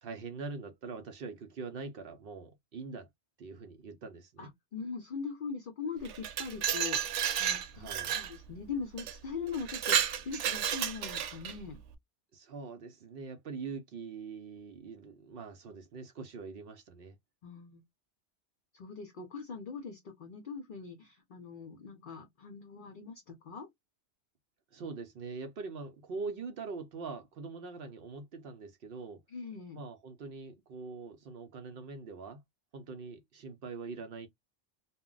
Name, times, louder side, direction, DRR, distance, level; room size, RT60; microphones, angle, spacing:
voice 1, 0.0-3.1 3.4-4.5 7.7-8.1 12.3-17.2 24.7-29.2 29.7-32.4 32.7-34.3, right 4 dB, 60° right, 0.7 m, -43 dB
voice 2, 4.4-11.8 17.4-17.8 18.7-23.7 29.3-29.8, left 5 dB, 55° left, 0.7 m, -41 dB
Glass, 6.0-8.3 9.0-9.1 9.5-11.6, right 9 dB, 85° right, 0.9 m, -32 dB
2.2 x 2.1 x 3.7 m
omnidirectional pair, 1.2 m